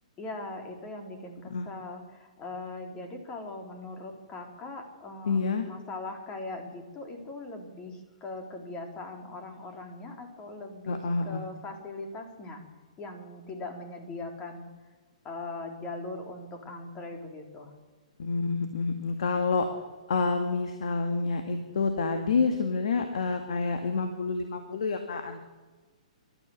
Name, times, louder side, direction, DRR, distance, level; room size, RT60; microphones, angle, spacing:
voice 1, 0.2-12.6 13.0-14.7 15.2-17.7, left 2 dB, 25° left, 3 dB, 4.0 m, -40 dB
voice 2, 5.3-5.7 10.9-11.4 18.2-19.7 20.1-25.4, left 4 dB, 65° left, 6 dB, 2.1 m, -28 dB
25.5 x 13.0 x 8.0 m, 1.3 s
figure-of-eight pair, 125°, 4 cm